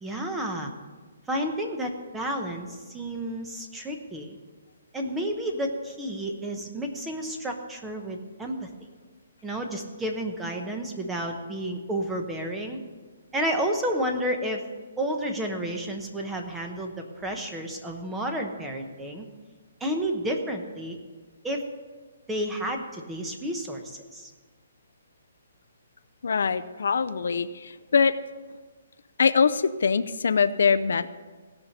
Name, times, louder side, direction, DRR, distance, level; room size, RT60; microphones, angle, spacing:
voice 1, 0.0-0.7 1.3-4.4 4.9-8.7 9.4-12.8 13.3-14.6 15.0-19.2 19.8-21.0 21.4-21.6 22.3-24.3, right 1 dB, 5° right, 3 dB, 0.9 m, -31 dB
voice 2, 26.2-28.2 29.2-31.1, left 5 dB, 70° left, 13 dB, 0.5 m, -23 dB
16.5 x 5.7 x 6.5 m, 1.4 s
hypercardioid pair, 165°, 0 cm